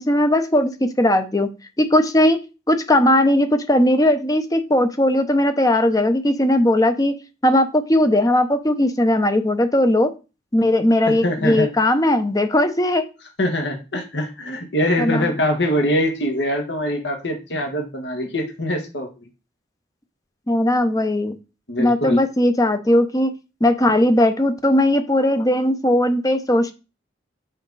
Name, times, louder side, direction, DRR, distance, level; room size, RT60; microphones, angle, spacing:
voice 1, 0.0-1.5 1.8-2.4 2.7-7.1 7.4-10.1 10.5-13.1 15.0-15.3 20.5-21.4 21.8-23.3 23.6-26.7, left 1 dB, 20° left, 9 dB, 0.8 m, -18 dB
voice 2, 11.1-11.7 13.4-19.3 21.7-22.2, left 1 dB, 70° left, 3 dB, 1.8 m, -23 dB
7.5 x 5.1 x 4.1 m, 0.30 s
head